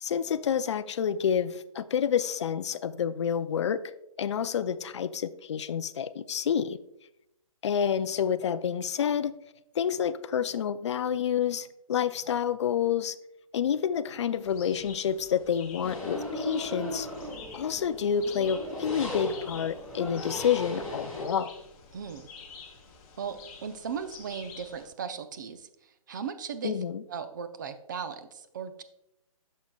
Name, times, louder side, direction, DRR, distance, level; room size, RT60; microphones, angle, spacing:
voice 1, 0.0-3.8 4.2-6.8 7.6-9.3 9.8-13.2 13.5-17.1 17.5-21.5 26.6-27.0, left 8 dB, 50° left, 13 dB, 0.4 m, -28 dB
sound 1, 14.4-24.9, left 5 dB, 15° left, 0.7 m, -49 dB
sound 2, 15.8-21.3, left 1 dB, ahead, 1.5 m, -37 dB
voice 2, 21.9-22.3 23.2-28.8, right 6 dB, 30° right, 9 dB, 0.5 m, -37 dB
9.4 x 6.3 x 2.3 m, 0.85 s
hypercardioid pair, 160°, 19 cm